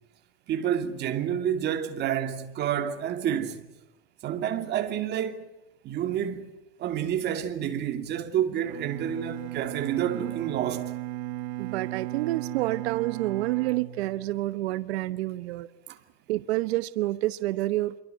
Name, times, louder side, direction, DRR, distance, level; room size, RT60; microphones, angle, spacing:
voice 1, 0.5-3.6 4.2-5.5 5.8-11.0 15.9-16.0, right 9 dB, 35° right, 2.6 m, -29 dB
Bowed string instrument, 8.6-14.7, right 16 dB, 60° right, 1.5 m, -36 dB
voice 2, 11.6-15.7 16.3-18.0, right 17 dB, 85° right, 1.1 m, -28 dB
27.0 x 23.0 x 8.0 m
supercardioid pair, 155°, 31 cm